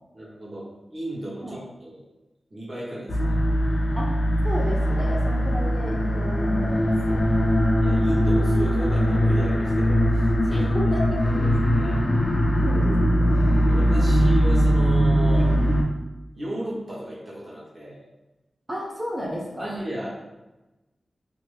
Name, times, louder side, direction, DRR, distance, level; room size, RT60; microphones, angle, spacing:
voice 1, 0.1-2.0 2.5-3.4 5.1-5.2 7.8-10.7 11.2-12.0 13.6-15.5 16.3-18.0 19.2-20.1, right 1 dB, 40° right, -7 dB, 0.8 m, -35 dB
sound 1, 3.1-15.8, equal, 55° left, 0.4 m, -21 dB
voice 2, 4.4-7.2 10.5-11.2 12.6-13.5 15.3-15.4 18.7-19.7, equal, 10° right, -4 dB, 0.6 m, -33 dB
2.4 x 2.4 x 3.2 m, 1.0 s
wide cardioid pair, 105°, 0 cm